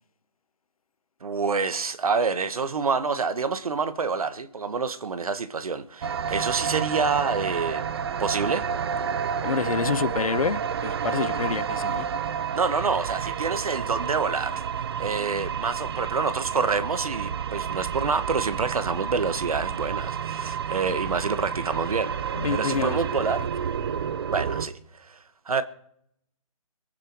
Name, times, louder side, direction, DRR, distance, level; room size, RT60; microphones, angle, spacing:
voice 1, 1.2-7.8 8.2-8.6 12.5-14.6 15.0-23.5 24.3-25.2 25.5-25.6, right 5 dB, 75° right, 1.4 m, -27 dB
sound 1, 6.0-24.7, right 7 dB, 45° right, 0.8 m, -30 dB
voice 2, 9.4-12.1 22.3-23.3, left 6 dB, 75° left, 0.8 m, -28 dB
23.0 x 9.4 x 4.6 m
hypercardioid pair, 155°, 19 cm